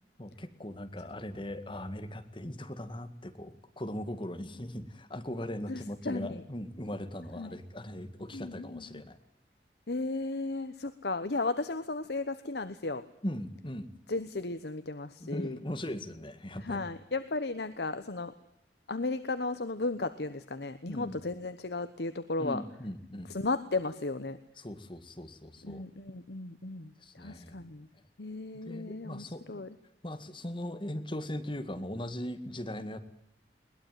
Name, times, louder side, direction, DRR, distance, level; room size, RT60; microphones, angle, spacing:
voice 1, 0.2-9.2 13.2-13.9 15.2-16.9 20.9-21.2 22.4-23.3 24.6-25.8 27.0-27.6 28.7-29.4 30.0-33.0, left 1 dB, 30° left, 8 dB, 2.0 m, -39 dB
voice 2, 5.7-6.4 7.4-7.6 8.3-9.0 9.9-13.0 14.1-15.6 16.6-18.3 18.9-22.6 23.3-24.4 25.6-26.9 27.2-27.9 28.2-29.7, left 3 dB, 65° left, 11 dB, 1.1 m, -35 dB
21.5 x 20.0 x 9.4 m, 0.75 s
head